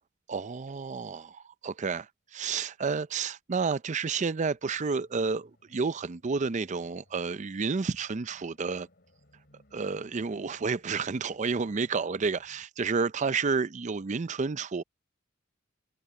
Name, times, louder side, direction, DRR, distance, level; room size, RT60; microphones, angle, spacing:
voice 1, 0.3-8.9 9.7-14.8, right 5 dB, 40° right, 0.5 m, -30 dB
sound 1, 4.2-12.7, left 1 dB, 55° left, 4.8 m, -64 dB
head